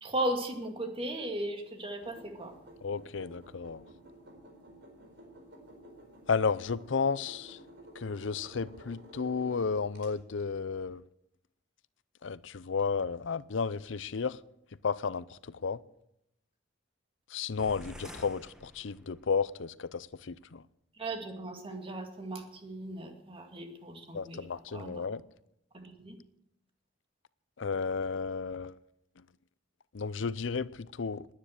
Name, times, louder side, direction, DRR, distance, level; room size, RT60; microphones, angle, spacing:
voice 1, 0.0-2.6 21.0-25.0 25.7-26.2, right 1 dB, 30° right, 2.2 m, -37 dB
sound 1, 2.0-10.1, right 1 dB, 65° right, 4.6 m, -52 dB
voice 2, 2.8-3.8 6.3-7.6 8.0-11.0 12.2-14.4 14.8-15.8 17.3-20.6 24.1-25.2 27.6-28.8 29.9-31.3, left 5 dB, 80° left, 0.6 m, -33 dB
sound 2, 17.6-19.4, equal, 5° right, 1.4 m, -49 dB
20.0 x 9.7 x 6.5 m
head